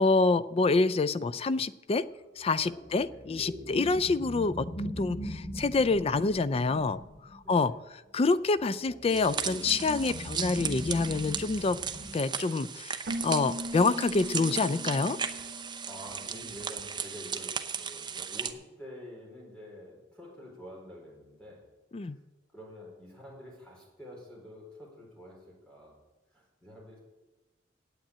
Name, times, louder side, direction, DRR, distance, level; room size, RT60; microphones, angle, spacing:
voice 1, 0.0-2.0 2.4-4.7 5.0-7.0 7.3-7.7 8.1-11.8 12.1-13.0 13.2-15.2 21.9-22.2, left 3 dB, 30° left, 15 dB, 0.4 m, -27 dB
sound 1, 2.3-7.5 8.4-12.1, equal, 70° left, 4.5 m, -41 dB
voice 2, 2.9-3.2 3.6-3.9 7.4-7.8 13.6-13.8 15.7-21.6 22.0-22.1 22.5-25.9 26.3-27.0, equal, 5° left, -3 dB, 4.4 m, -48 dB
sound 2, 9.1-18.5, right 6 dB, 25° right, 0.7 m, -36 dB
Keyboard (musical), 13.0-16.7, equal, 65° right, 0.8 m, -40 dB
9.0 x 8.5 x 8.7 m, 1.1 s
head